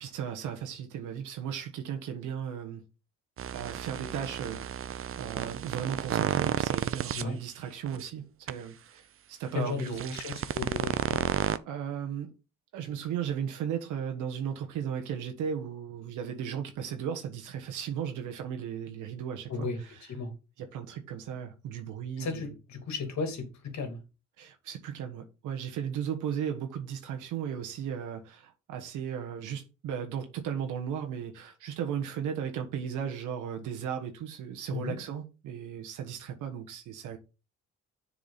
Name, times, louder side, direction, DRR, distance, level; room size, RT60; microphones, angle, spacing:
voice 1, 0.0-2.8 3.5-4.9 5.2-10.6 11.6-12.3 12.7-20.0 20.6-22.5 24.4-37.2, right 8 dB, 90° right, 1.4 m, -36 dB
sound 1, 3.4-7.2 7.9-8.0 8.5-8.6 9.8-11.6, right 9 dB, 45° right, 0.6 m, -32 dB
voice 2, 9.5-11.3 19.5-19.8 20.1-20.3 22.2-24.0 34.7-35.0, left 4 dB, 65° left, 2.6 m, -35 dB
7.2 x 4.9 x 4.1 m
cardioid pair, 90°, 30 cm